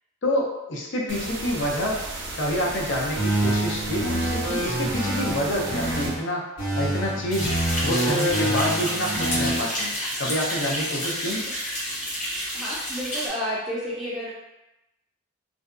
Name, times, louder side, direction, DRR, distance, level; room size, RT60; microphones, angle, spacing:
voice 1, 0.2-2.0 2.4-6.5 6.8-7.5 7.8-9.9 10.2-11.4, equal, 65° left, -2 dB, 0.5 m, -27 dB
sound 1, 1.1-6.1, right 2 dB, 60° right, 0.5 m, -35 dB
sound 2, 3.2-6.2 6.6-9.6, right 1 dB, 90° left, 1.2 m, -26 dB
sound 3, 7.3-13.3, equal, 40° left, 0.9 m, -30 dB
voice 2, 12.5-14.3, equal, ahead, -9 dB, 0.4 m, -31 dB
2.6 x 2.2 x 2.4 m, 0.96 s
head